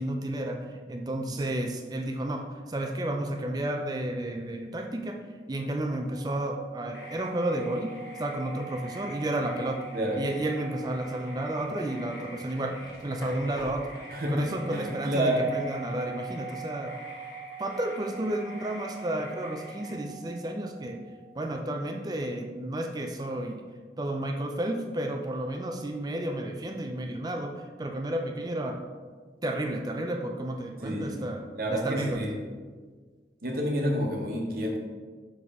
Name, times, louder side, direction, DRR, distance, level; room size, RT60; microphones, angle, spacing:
voice 1, 0.0-5.2 5.5-7.9 8.2-9.8 10.2-13.9 14.3-17.0 17.6-21.0 21.3-23.7 24.0-28.8 29.4-32.2, right 1 dB, 20° right, 4 dB, 0.4 m, -32 dB
sound 1, 2.7-3.8 5.8-21.9, right 6 dB, 50° left, 1.3 m, -46 dB
sound 2, 6.9-19.9, left 1 dB, 80° left, 1.2 m, -48 dB
sound 3, 11.5-16.7 17.0-17.2, equal, 20° left, 1.2 m, -48 dB
voice 2, 14.1-15.4 30.8-31.2 31.6-32.3 33.4-34.8, equal, 55° right, 0 dB, 1.1 m, -29 dB
6.2 x 5.2 x 3.6 m, 1.5 s
head